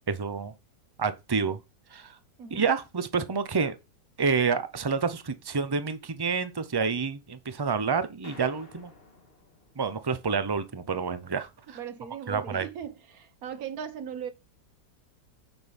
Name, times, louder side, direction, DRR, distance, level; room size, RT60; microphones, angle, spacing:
voice 1, 0.1-0.5 1.0-1.6 1.9-2.1 2.5-3.8 4.2-8.9 9.8-11.8 12.3-12.6, right 5 dB, 40° right, 0.3 m, -28 dB
sound 1, 8.2-10.2, left 3 dB, 30° left, 2.0 m, -52 dB
voice 2, 11.7-14.3, right 8 dB, 55° right, 1.4 m, -38 dB
9.2 x 6.2 x 5.3 m
omnidirectional pair, 1.9 m